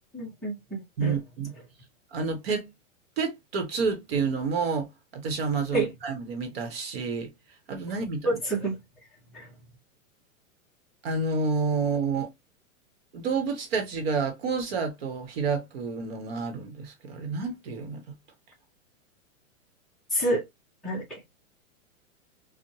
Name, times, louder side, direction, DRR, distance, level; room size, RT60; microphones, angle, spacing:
voice 1, 0.1-1.2 5.7-5.9 8.2-8.8 9.3-9.5 20.1-20.4 20.8-21.2, right 1 dB, ahead, 0.6 m, -28 dB
voice 2, 1.0-1.5 2.1-2.7 3.2-7.3 7.7-8.3 11.0-12.3 13.1-18.0, right 4 dB, 45° right, 1.0 m, -29 dB
4.6 x 2.1 x 2.7 m
supercardioid pair, 170°, 42 cm